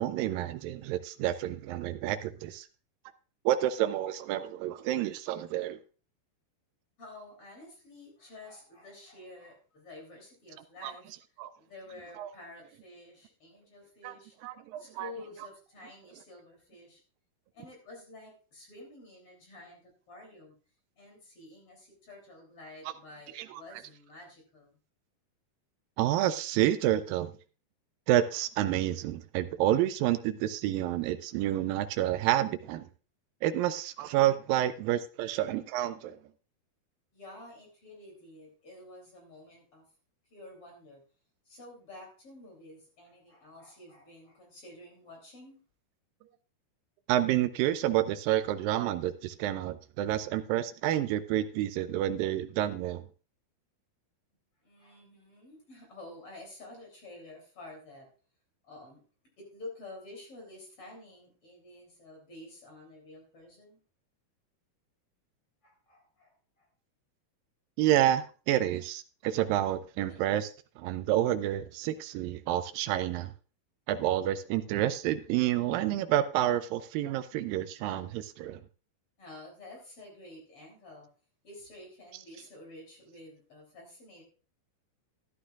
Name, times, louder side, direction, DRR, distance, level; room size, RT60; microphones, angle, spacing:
voice 1, 0.0-2.7 3.5-5.8 10.8-10.9 11.4-11.5 12.2-12.3 14.0-14.1 14.4-15.1 23.4-23.5 26.0-27.3 28.1-32.9 33.4-36.2 47.1-53.0 67.8-70.5 70.8-73.3 73.9-78.6, right 12 dB, 85° right, 10 dB, 2.0 m, -29 dB
voice 2, 7.0-11.1 11.6-14.4 14.8-17.0 17.5-19.8 20.1-20.5 21.0-24.8 37.1-39.8 40.3-41.0 41.5-45.6 54.6-58.1 58.6-59.0 59.4-63.8 65.6-66.7 68.7-68.8 70.1-70.2 79.2-81.1 81.4-84.2, left 2 dB, 35° left, 0 dB, 3.7 m, -50 dB
13.5 x 11.5 x 2.4 m, 0.36 s
omnidirectional pair, 4.7 m